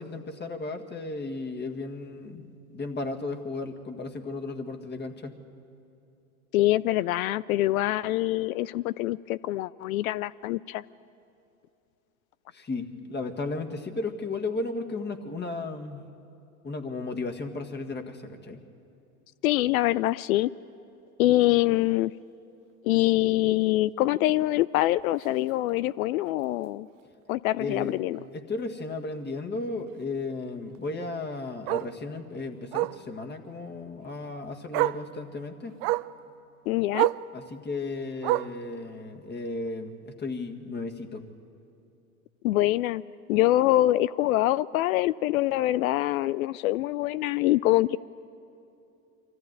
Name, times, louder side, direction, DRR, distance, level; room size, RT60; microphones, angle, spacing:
voice 1, 0.0-2.4 2.7-5.4 12.5-16.1 16.6-18.6 27.6-27.9 28.3-35.7 37.3-41.3, left 3 dB, 25° left, 4 dB, 1.8 m, -34 dB
voice 2, 6.5-10.8 19.4-20.5 21.2-22.1 22.8-26.9 27.3-28.2 36.7-37.1 42.4-43.0 43.3-48.0, left 16 dB, 70° left, 19 dB, 0.5 m, -24 dB
Bark, 25.2-25.4 25.8-25.9 26.3-26.4 26.6-26.7 28.1-28.2 30.7-30.8 31.7-31.9 32.7-33.0 34.2-34.3 34.7-35.1 35.8-36.1 36.9-37.3 38.2-38.6 39.6-39.7, right 18 dB, 50° right, 0.6 m, -27 dB
24.5 x 14.5 x 9.5 m, 2.8 s
hypercardioid pair, 90°, 43 cm